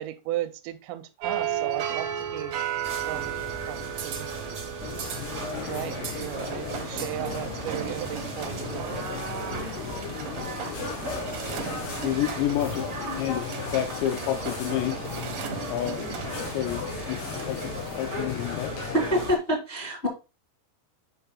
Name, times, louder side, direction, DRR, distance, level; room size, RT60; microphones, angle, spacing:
voice 1, 0.0-2.6 3.1-4.3 5.5-9.1, right 14 dB, 90° right, 2.8 m, -35 dB
sound 1, 1.2-17.9, right 8 dB, 65° right, 2.1 m, -35 dB
sound 2, 2.8-19.4, right 2 dB, 40° right, 1.3 m, -40 dB
sound 3, 4.8-19.4, left 5 dB, 70° left, 3.9 m, -36 dB
voice 2, 12.0-15.1 15.7-18.7, left 12 dB, 85° left, 2.9 m, -30 dB
voice 3, 18.9-20.1, equal, 50° left, 0.7 m, -25 dB
8.2 x 6.7 x 2.3 m
omnidirectional pair, 5.0 m